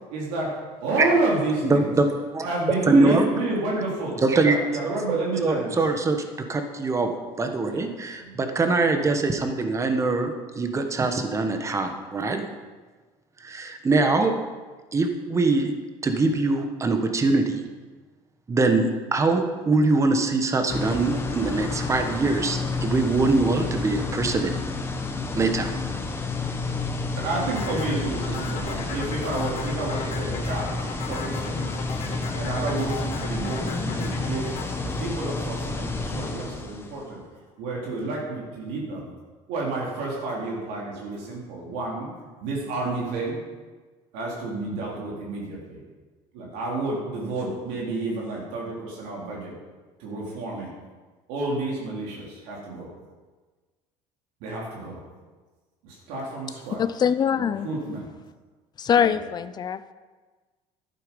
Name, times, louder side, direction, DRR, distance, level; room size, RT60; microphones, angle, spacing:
voice 1, 0.1-0.5 0.8-1.9 2.4-5.8 7.7-7.8 8.2-8.3 27.2-31.8 32.4-34.5 34.8-37.2 37.6-39.1 39.5-42.1 42.4-43.4 44.1-45.8 46.3-49.5 50.0-50.7 51.3-52.9 54.4-55.0 55.8-56.8 57.3-58.1 58.9-59.2, right 2 dB, 80° right, -3 dB, 3.5 m, -30 dB
voice 2, 1.6-2.1 2.3-2.5 2.8-3.3 4.2-6.2 6.5-12.5 13.4-14.3 14.9-15.7 16.0-17.6 18.5-24.6 25.3-25.7, right 3 dB, 25° right, 6 dB, 1.4 m, -23 dB
sound 1, 20.7-37.0, left 3 dB, 20° left, 1.4 m, -30 dB
sound 2, 27.6-35.9, left 6 dB, 60° left, 3.2 m, -37 dB
voice 3, 56.8-57.7 58.8-59.9, left 8 dB, 35° left, 13 dB, 0.6 m, -23 dB
11.5 x 9.3 x 5.4 m, 1.4 s
cardioid pair, 110°, 13 cm